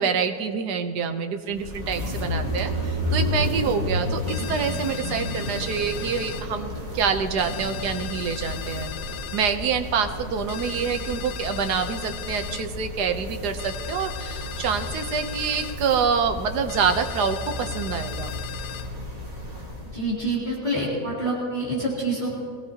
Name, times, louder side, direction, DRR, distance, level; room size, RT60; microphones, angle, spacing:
voice 1, 0.0-8.9 9.3-18.4, right 6 dB, 75° right, 7 dB, 1.5 m, -26 dB
sound 1, 1.5-20.0, left 1 dB, 25° right, 2.2 m, -32 dB
sound 2, 4.3-6.5 7.4-9.6 10.5-12.7 13.6-15.8 16.7-18.9, left 11 dB, 75° left, 1.2 m, -38 dB
voice 2, 19.9-22.3, right 1 dB, 25° left, -7 dB, 3.3 m, -27 dB
22.5 x 17.5 x 2.9 m, 2.4 s
omnidirectional pair, 1.8 m